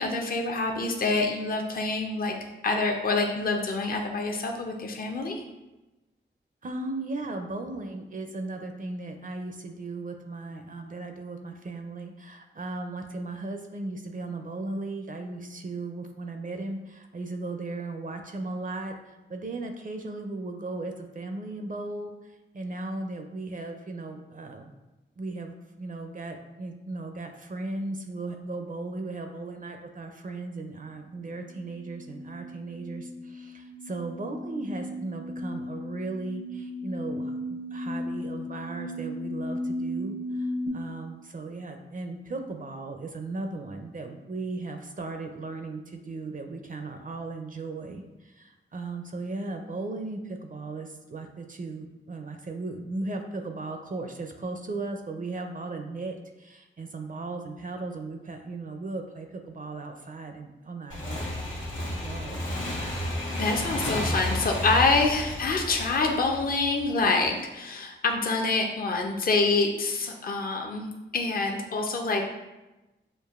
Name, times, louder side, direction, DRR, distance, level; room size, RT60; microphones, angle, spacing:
voice 1, 0.0-2.3 2.6-5.4 63.3-72.2, left 3 dB, 50° left, 2 dB, 0.5 m, -26 dB
voice 2, 6.6-24.7 25.2-61.3 62.0-62.4, right 2 dB, 45° right, 5 dB, 0.4 m, -36 dB
sound 1, 31.5-40.7, left 1 dB, 90° right, 0.8 m, -36 dB
Motorcycle / Engine, 60.9-67.3, left 1 dB, 75° left, 1.1 m, -32 dB
6.5 x 2.5 x 2.4 m, 1.0 s
wide cardioid pair, 85°, 20 cm